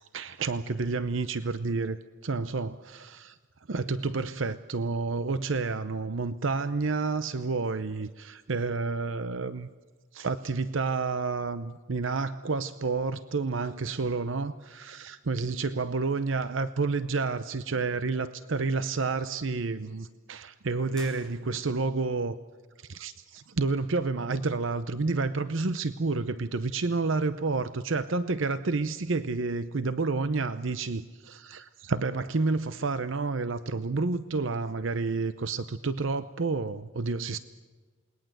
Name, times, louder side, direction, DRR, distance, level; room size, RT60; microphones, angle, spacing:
voice 1, 0.0-3.4 3.7-9.7 10.1-22.4 22.8-37.4, right 3 dB, 70° right, 13 dB, 0.7 m, -30 dB
sound 1, 20.9-22.0, left 3 dB, 5° left, 6.5 m, -50 dB
28.5 x 20.5 x 7.8 m, 1.4 s
head